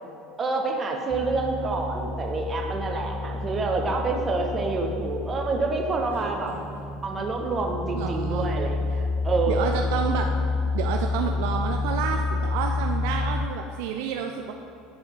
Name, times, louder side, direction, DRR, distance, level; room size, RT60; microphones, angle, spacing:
voice 1, 0.4-6.5 7.0-9.7, right 3 dB, 30° right, 3 dB, 1.1 m, -27 dB
sound 1, 1.1-13.5, left 3 dB, 10° left, 0.4 m, -29 dB
sound 2, 6.0-6.9, right 1 dB, 80° right, 1.4 m, -45 dB
voice 2, 7.9-8.5 9.5-10.3 10.7-14.5, right 7 dB, 55° right, 3 dB, 0.4 m, -29 dB
10.0 x 6.9 x 3.8 m, 2.7 s
figure-of-eight pair, 70°, 0 cm